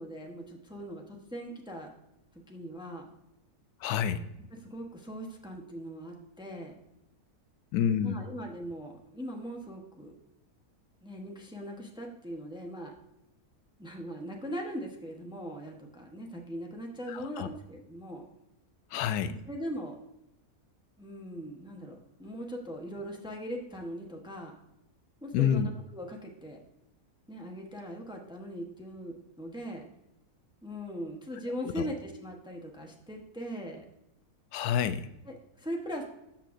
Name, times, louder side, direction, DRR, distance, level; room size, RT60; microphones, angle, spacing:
voice 1, 0.0-1.9 2.5-3.1 4.5-6.7 8.0-10.1 11.0-12.9 13.8-18.3 19.2-20.0 21.0-24.5 25.2-26.6 27.3-29.8 30.6-33.8 35.3-36.0, equal, 5° right, 1 dB, 0.7 m, -40 dB
voice 2, 3.8-4.2 7.7-8.3 17.1-17.5 18.9-19.4 25.3-25.7 31.6-31.9 34.5-35.1, left 8 dB, 85° left, 12 dB, 1.1 m, -28 dB
13.0 x 5.6 x 2.6 m, 0.87 s
omnidirectional pair, 1.6 m